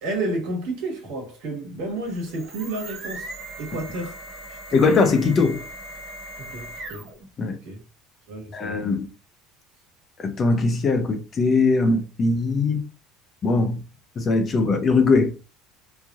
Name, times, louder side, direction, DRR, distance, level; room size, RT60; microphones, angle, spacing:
voice 1, 0.0-3.3 3.6-4.2 4.5-5.1 6.4-7.1 7.6-7.8 8.3-8.9, right 2 dB, 75° right, 1.4 m, -31 dB
sound 1, 2.0-7.3, right 1 dB, 35° right, 0.7 m, -39 dB
voice 2, 4.7-5.6 7.4-7.6 8.5-9.1 10.2-12.8 13.4-13.8 14.2-15.3, left 3 dB, 25° left, 0.4 m, -20 dB
3.0 x 2.6 x 2.4 m
cardioid pair, 175°, 0 cm